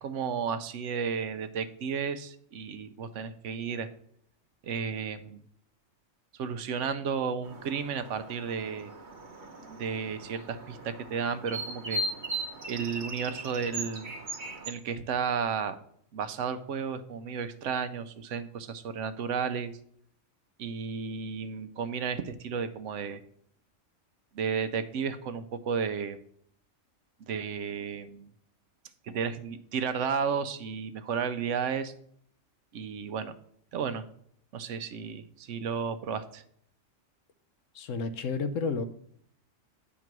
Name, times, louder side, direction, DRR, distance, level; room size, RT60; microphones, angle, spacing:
voice 1, 0.0-3.9 4.6-5.4 6.3-8.9 9.7-12.0 12.7-14.2 14.7-15.8 16.1-19.7 20.6-23.2 24.3-26.2 27.2-28.3 29.0-31.9 32.7-33.3 33.7-34.1 34.5-36.4, right 6 dB, 75° right, 11 dB, 1.0 m, -33 dB
sound 1, 7.4-14.7, right 1 dB, 40° right, 1.1 m, -38 dB
voice 2, 37.7-38.8, left 4 dB, 80° left, 10 dB, 1.1 m, -31 dB
9.2 x 3.8 x 5.9 m, 0.65 s
omnidirectional pair, 1.3 m